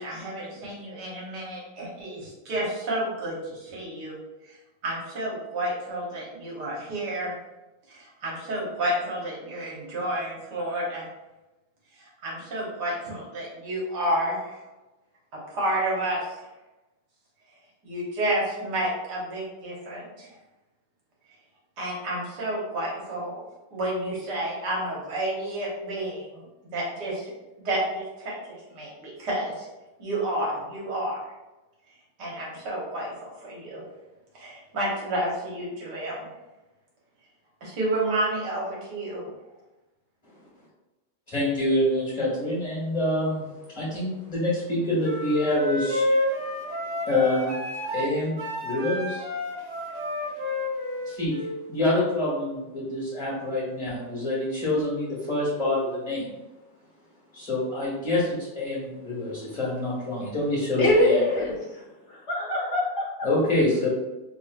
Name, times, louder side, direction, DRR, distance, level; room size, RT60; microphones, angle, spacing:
voice 1, 0.0-4.2 4.8-7.3 7.9-11.0 12.2-14.6 15.3-16.2 17.8-20.3 21.8-23.4 23.7-26.4 26.7-27.3 27.6-29.7 30.0-31.2 32.2-33.8 34.3-36.3 37.6-39.2, right 1 dB, 75° right, -4 dB, 1.7 m, -30 dB
voice 2, 41.3-43.4 43.7-46.1 47.0-47.5 47.9-49.3 51.0-51.3 51.7-56.3 57.3-61.2 63.2-63.9, left 1 dB, 30° left, -9 dB, 1.7 m, -26 dB
sound 1, 45.0-51.5, left 1 dB, 60° right, 0.8 m, -30 dB
voice 3, 60.8-61.8 62.1-63.1, left 1 dB, 45° left, -6 dB, 1.4 m, -24 dB
3.5 x 3.0 x 2.4 m, 1.0 s
omnidirectional pair, 1.8 m